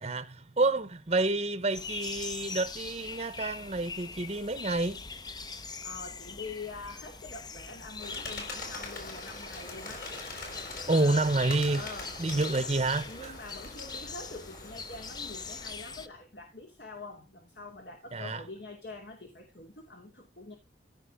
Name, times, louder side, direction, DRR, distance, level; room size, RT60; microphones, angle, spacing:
voice 1, 0.0-5.0 10.9-11.8 12.2-13.3 18.1-18.4, right 2 dB, 35° right, 0.8 m, -28 dB
sound 1, 1.7-16.1, left 5 dB, 25° left, 0.6 m, -42 dB
voice 2, 5.8-10.1 10.9-11.3 11.7-12.7 13.1-20.6, left 3 dB, 65° left, 2.7 m, -45 dB
Bird, 8.0-15.7, left 2 dB, 50° left, 5.7 m, -43 dB
15.5 x 6.0 x 3.5 m
head